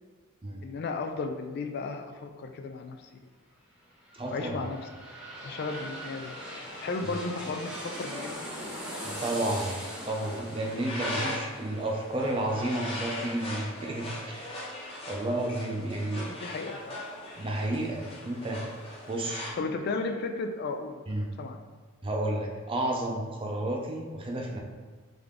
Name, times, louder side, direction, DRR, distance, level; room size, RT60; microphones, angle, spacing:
voice 1, 0.6-3.0 4.3-4.9 5.4-6.4 6.8-8.5 16.2-17.0 19.6-21.0 21.4-21.6, left 3 dB, 50° left, 5 dB, 0.3 m, -34 dB
sound 1, 3.8-13.5 13.9-14.0, equal, 5° right, 0.9 m, -41 dB
voice 2, 4.1-4.6 9.0-9.8 10.1-14.7 15.1-16.4 17.4-18.7 19.1-19.5 21.1-21.3 22.0-24.6, right 1 dB, 25° right, 0 dB, 0.6 m, -31 dB
sound 2, 5.7-19.5, left 1 dB, 30° left, 0.9 m, -41 dB
3.7 x 3.4 x 3.6 m, 1.5 s
head